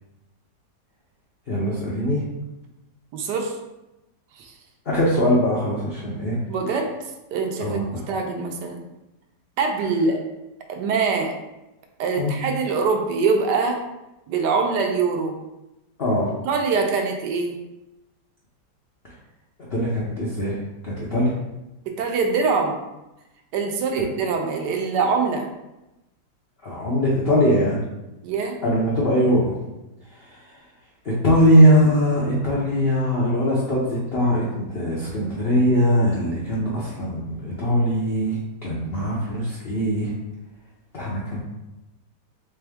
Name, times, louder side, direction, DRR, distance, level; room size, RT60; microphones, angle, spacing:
voice 1, 1.5-2.2 4.9-6.4 7.6-8.0 12.2-12.3 16.0-16.3 19.7-20.6 20.8-21.3 26.6-27.8 28.6-29.6 30.1-30.4 31.0-38.4 38.6-40.1 40.9-41.4, equal, 60° left, -6 dB, 0.6 m, -21 dB
voice 2, 3.1-3.5 4.4-4.5 6.5-6.9 7.3-8.8 9.6-10.2 10.7-11.3 12.0-13.8 14.3-15.3 16.4-17.6 21.9-22.8 23.5-25.5 28.2-28.6, right 4 dB, 75° right, 3 dB, 1.2 m, -23 dB
3.4 x 3.4 x 3.4 m, 0.97 s
omnidirectional pair, 1.9 m